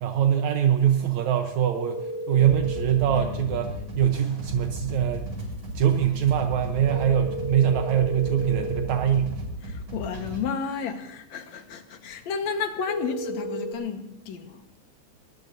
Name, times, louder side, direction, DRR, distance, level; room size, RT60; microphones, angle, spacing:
voice 1, 0.0-5.3 5.8-9.4, right 9 dB, 75° right, 4 dB, 2.2 m, -23 dB
sound 1, 1.7-2.9 6.8-8.9 12.8-13.7, right 1 dB, 15° left, 4.7 m, -33 dB
sound 2, 2.4-10.4, equal, 50° right, 7.7 m, -35 dB
Bass guitar, 3.1-9.3, left 11 dB, 90° left, 2.3 m, -45 dB
voice 2, 9.7-14.5, left 6 dB, 70° left, 6 dB, 2.6 m, -32 dB
22.0 x 21.0 x 2.7 m, 0.87 s
omnidirectional pair, 3.3 m